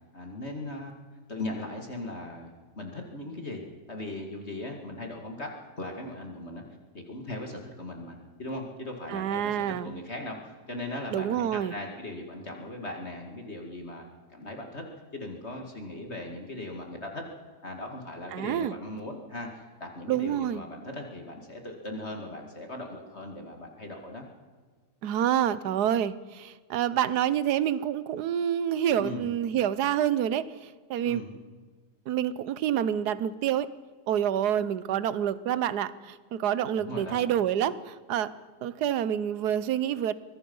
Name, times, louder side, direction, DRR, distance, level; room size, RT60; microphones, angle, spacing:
voice 1, 0.1-0.9 1.3-3.6 3.9-6.6 6.9-14.0 14.3-14.8 15.1-17.3 17.6-24.3 29.0-29.3 31.0-31.3 36.7-37.2, left 1 dB, 40° left, 2 dB, 2.5 m, -39 dB
voice 2, 9.1-9.9 11.1-11.7 18.3-18.7 20.1-20.6 25.0-31.2 32.1-33.7 34.1-38.3 38.6-40.1, right 10 dB, 70° right, 16 dB, 1.4 m, -27 dB
24.5 x 21.0 x 5.5 m, 1.4 s
omnidirectional pair, 1.8 m